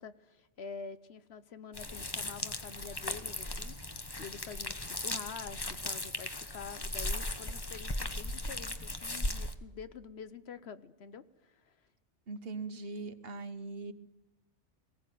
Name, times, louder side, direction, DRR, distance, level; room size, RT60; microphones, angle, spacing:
voice 1, 0.0-3.7 4.2-11.8, left 6 dB, 65° left, 13 dB, 1.1 m, -47 dB
sound 1, 1.7-9.5, left 1 dB, 20° left, 1.1 m, -37 dB
voice 2, 12.3-13.9, right 3 dB, 60° right, 11 dB, 1.4 m, -40 dB
20.0 x 17.0 x 9.2 m, 1.1 s
omnidirectional pair, 1.2 m